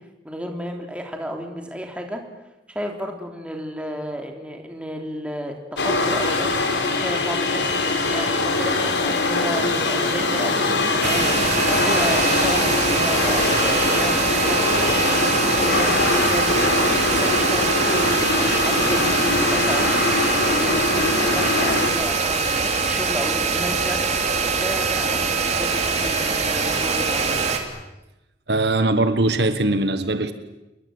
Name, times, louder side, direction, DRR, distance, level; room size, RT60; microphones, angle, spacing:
voice 1, 0.2-2.2 2.7-5.6 5.8-20.0 20.4-24.1 24.6-27.6, equal, 5° right, 2 dB, 3.4 m, -32 dB
sound 1, 5.8-21.9, left 2 dB, 85° left, 4.2 m, -22 dB
sound 2, 11.0-27.6, right 4 dB, 40° right, 3.0 m, -23 dB
voice 2, 28.5-30.3, right 2 dB, 65° right, 10 dB, 1.4 m, -21 dB
28.5 x 22.0 x 7.9 m, 0.98 s
head